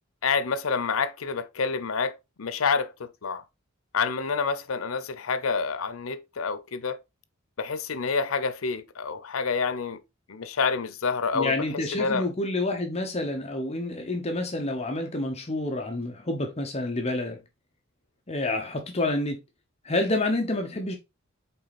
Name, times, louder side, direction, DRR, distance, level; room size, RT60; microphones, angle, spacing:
voice 1, 0.2-3.4 3.9-7.0 7.6-10.0 10.3-11.5 11.9-12.3, left 5 dB, 85° left, 0.7 m, -28 dB
voice 2, 11.3-17.4 18.3-19.4 19.8-21.0, left 2 dB, 30° left, 0.9 m, -28 dB
5.6 x 4.1 x 4.1 m
head